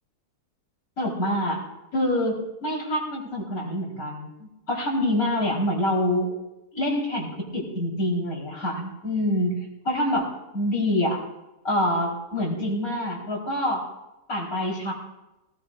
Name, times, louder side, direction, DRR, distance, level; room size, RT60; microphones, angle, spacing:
voice 1, 1.0-1.6 1.9-6.3 6.7-9.6 9.8-11.2 11.6-13.9 14.3-14.9, left 1 dB, 70° left, -3 dB, 4.4 m, -26 dB
18.5 x 18.5 x 2.4 m, 0.95 s
omnidirectional pair, 1.6 m